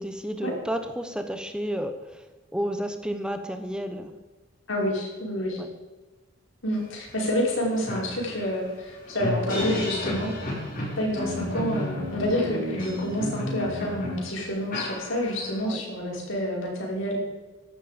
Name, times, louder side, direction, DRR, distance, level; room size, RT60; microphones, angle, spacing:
voice 1, 0.0-2.2 2.5-4.1 5.6-5.7 15.6-15.8, equal, 5° right, 7 dB, 0.9 m, -31 dB
voice 2, 4.7-5.6 6.6-10.3 11.0-17.2, equal, 80° left, -2 dB, 5.3 m, -28 dB
sound 1, 7.1-7.2 7.5-15.6, left 1 dB, 45° left, 5.4 m, -32 dB
16.0 x 11.5 x 5.2 m, 1.2 s
head